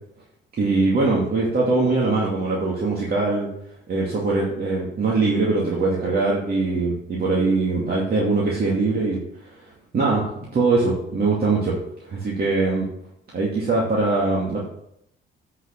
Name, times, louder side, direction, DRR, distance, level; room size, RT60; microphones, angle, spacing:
voice 1, 0.6-3.5 3.9-9.2 9.9-10.2 10.5-11.8 12.0-12.9 13.3-14.6, right 3 dB, 50° right, -4 dB, 2.5 m, -22 dB
8.3 x 5.9 x 6.5 m, 0.75 s
cardioid pair, 90°, 20 cm